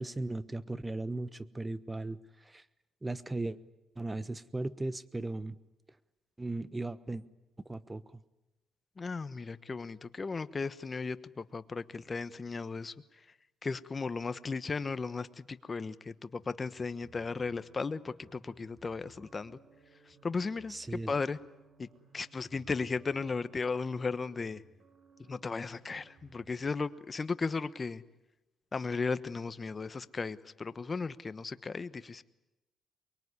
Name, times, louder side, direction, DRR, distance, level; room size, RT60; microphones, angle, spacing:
voice 1, 0.0-2.6 3.0-3.6 4.0-5.6 6.4-7.2 7.6-8.0 20.7-21.1, right 2 dB, 15° right, 15 dB, 1.1 m, -37 dB
voice 2, 9.0-13.2 13.6-19.6 20.1-21.4 21.8-21.9 22.1-24.6 25.3-28.0 28.7-32.2, left 4 dB, 30° left, 13 dB, 1.1 m, -36 dB
sound 1, 16.4-26.7, right 4 dB, 55° right, 5.6 m, -61 dB
24.0 x 22.5 x 9.8 m, 0.99 s
cardioid pair, 90°, 0 cm